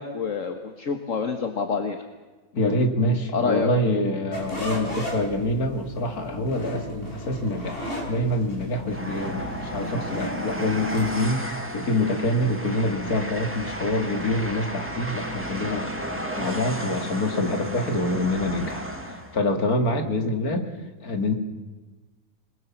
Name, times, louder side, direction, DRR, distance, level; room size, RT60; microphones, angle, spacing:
voice 1, 0.0-2.0 3.3-3.7, left 5 dB, 60° left, 6 dB, 1.8 m, -27 dB
voice 2, 2.5-11.4 11.7-15.9 16.4-18.8 19.3-20.7 21.0-21.3, left 1 dB, 80° left, 6 dB, 2.8 m, -25 dB
sound 1, 4.3-11.2, equal, 40° left, 5.7 m, -35 dB
Train, 8.9-19.4, equal, 10° right, 2.4 m, -33 dB
27.0 x 21.5 x 7.3 m, 1.3 s
omnidirectional pair, 1.6 m